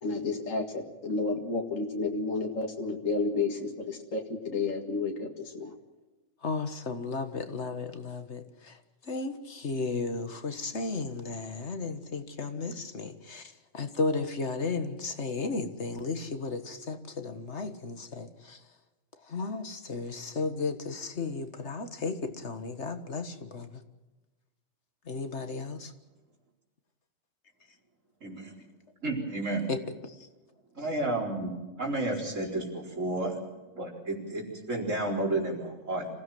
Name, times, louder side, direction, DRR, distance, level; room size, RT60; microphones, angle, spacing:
voice 1, 0.0-5.8, left 3 dB, 85° left, 2.4 m, -31 dB
voice 2, 6.4-8.8 9.1-18.6 19.3-23.8 25.1-25.9 29.7-29.8, left 4 dB, 60° left, 1.9 m, -34 dB
voice 3, 28.2-28.6 29.0-29.7 30.7-31.5 31.8-33.4 33.7-36.1, right 2 dB, 80° right, 4.8 m, -31 dB
26.0 x 16.5 x 7.7 m
omnidirectional pair, 1.3 m